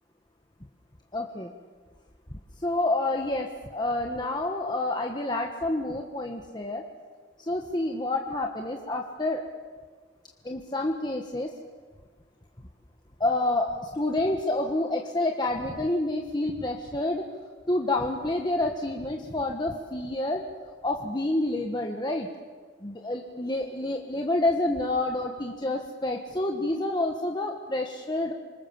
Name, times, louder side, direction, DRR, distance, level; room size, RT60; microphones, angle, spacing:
voice 1, 1.1-1.5 2.6-3.5 3.7-6.8 7.5-9.4 10.4-11.5 13.2-17.3 17.7-20.4 20.8-22.3 22.8-28.3, left 2 dB, 25° left, 2 dB, 1.5 m, -28 dB
27.5 x 25.0 x 7.3 m, 1.5 s
head